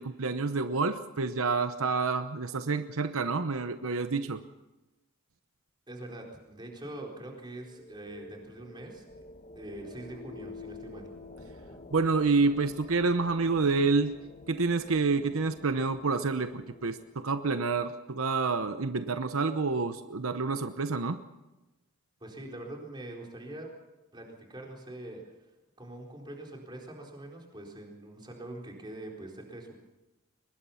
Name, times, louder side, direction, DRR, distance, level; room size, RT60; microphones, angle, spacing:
voice 1, 0.0-4.4 11.9-14.1 14.5-21.2, right 4 dB, 80° right, 9 dB, 0.9 m, -28 dB
voice 2, 5.9-9.1 9.6-11.1 22.2-23.7 24.1-25.2 25.8-29.8, right 1 dB, 20° right, 0 dB, 4.2 m, -43 dB
sound 1, 7.3-17.8, left 3 dB, 30° left, 1.3 m, -49 dB
23.5 x 20.5 x 5.8 m, 1.1 s
head